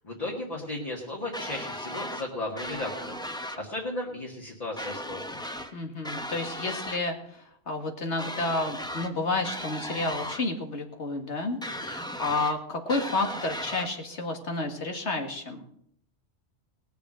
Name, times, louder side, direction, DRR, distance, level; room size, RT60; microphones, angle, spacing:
voice 1, 0.0-3.2 3.6-5.4, left 2 dB, 35° left, -2 dB, 1.9 m, -35 dB
sound 1, 1.3-2.3 2.6-3.6 4.8-5.7 6.0-7.0 8.2-9.1 9.4-10.4 11.6-12.5 12.9-13.9, equal, 5° left, 0.9 m, -36 dB
voice 2, 5.7-15.7, left 2 dB, 85° left, 4 dB, 2.2 m, -31 dB
19.0 x 7.0 x 6.3 m, 0.70 s
omnidirectional pair, 1.1 m